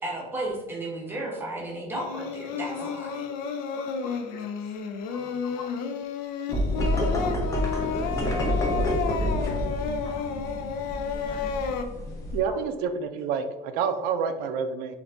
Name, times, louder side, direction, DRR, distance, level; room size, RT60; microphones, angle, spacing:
voice 1, 0.0-3.3, right 1 dB, 15° right, -2 dB, 0.8 m, -34 dB
Singing, 1.9-11.8, left 6 dB, 65° left, 0.4 m, -32 dB
voice 2, 3.7-4.5 5.1-5.8 7.1-9.6 10.0-10.3 11.0-11.7, left 3 dB, 85° left, 1 dB, 0.9 m, -45 dB
sound 1, 6.5-12.4, equal, 20° left, 0.6 m, -28 dB
voice 3, 12.3-15.0, right 6 dB, 70° right, 8 dB, 0.4 m, -28 dB
3.8 x 2.6 x 3.3 m, 1.0 s
cardioid pair, 175°, 16 cm